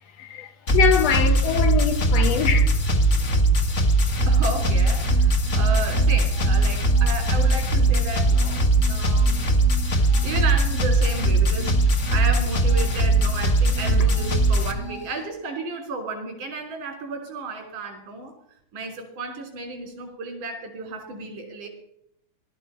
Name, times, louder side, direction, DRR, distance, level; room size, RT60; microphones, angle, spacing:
voice 1, 0.2-2.8 9.9-10.1, left 8 dB, 70° left, 1.7 m, -23 dB
sound 1, 0.7-14.7, right 2 dB, 50° left, 0.8 m, -20 dB
sound 2, 2.2-8.4, right 1 dB, 60° right, 1.7 m, -38 dB
sound 3, 4.2-15.2, right 5 dB, 30° right, 1.1 m, -41 dB
voice 2, 4.3-9.5 10.2-18.3 18.7-21.7, right 3 dB, 80° right, 5.0 m, -33 dB
18.0 x 13.0 x 5.6 m
omnidirectional pair, 3.6 m